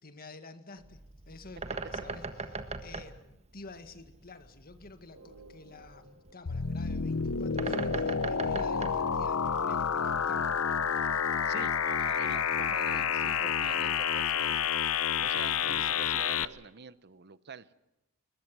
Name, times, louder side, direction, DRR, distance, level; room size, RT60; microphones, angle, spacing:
voice 1, 0.0-10.6 15.6-16.1, left 3 dB, 45° left, 8 dB, 1.8 m, -50 dB
Bird, 0.8-9.9, right 3 dB, 30° right, 1.5 m, -41 dB
sound 1, 5.1-16.6, right 1 dB, 75° right, 5.6 m, -54 dB
sound 2, 6.5-16.5, left 7 dB, 70° left, 0.8 m, -29 dB
voice 2, 11.5-14.6 15.2-17.7, right 5 dB, 50° right, 15 dB, 0.9 m, -45 dB
21.0 x 21.0 x 7.6 m, 0.91 s
head